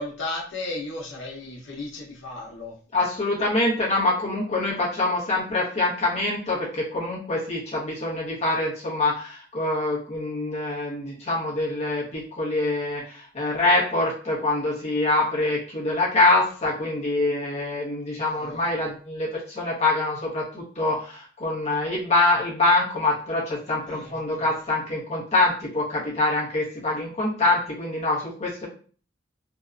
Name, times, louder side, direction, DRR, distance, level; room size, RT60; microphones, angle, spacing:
voice 1, 0.0-2.7 18.3-18.8 23.9-24.5, left 2 dB, 75° left, -4 dB, 0.9 m, -35 dB
voice 2, 2.9-28.7, left 2 dB, 35° left, -5 dB, 0.9 m, -25 dB
2.7 x 2.2 x 2.4 m, 0.41 s
head